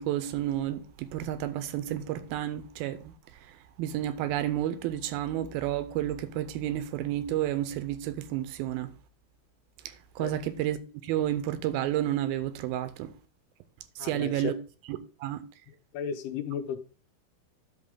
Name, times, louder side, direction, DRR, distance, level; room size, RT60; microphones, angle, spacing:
voice 1, 0.0-3.1 3.5-8.9 9.9-10.8 11.0-13.1 14.0-14.5 14.9-15.4, right 12 dB, 85° right, 2.5 m, -31 dB
voice 2, 14.0-14.6 15.9-16.8, left 7 dB, 85° left, 2.9 m, -34 dB
10.5 x 6.4 x 3.7 m
omnidirectional pair, 4.4 m